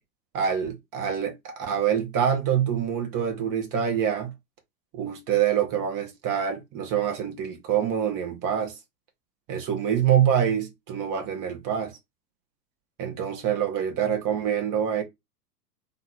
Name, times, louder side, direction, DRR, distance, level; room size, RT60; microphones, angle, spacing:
voice 1, 0.3-4.3 4.9-8.8 9.5-11.9 13.0-15.0, right 8 dB, 40° right, 2.0 m, -25 dB
3.8 x 3.1 x 4.4 m
hypercardioid pair, 105°, 50 cm